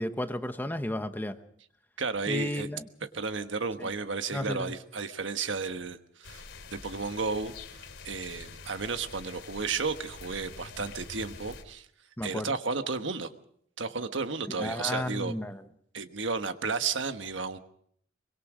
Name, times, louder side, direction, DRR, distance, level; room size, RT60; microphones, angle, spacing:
voice 1, 0.0-1.4 2.3-2.9 3.8-3.9 4.3-4.7 12.2-12.6 14.6-15.6, left 1 dB, 10° left, 9 dB, 1.0 m, -33 dB
voice 2, 2.0-2.7 3.1-6.4 6.8-7.5 8.0-11.9 12.2-13.3 13.8-15.3 15.9-17.6, right 4 dB, 80° right, 9 dB, 1.3 m, -33 dB
sound 1, 6.2-11.6, left 4 dB, 75° left, 3.6 m, -46 dB
24.0 x 22.0 x 5.0 m, 0.65 s
head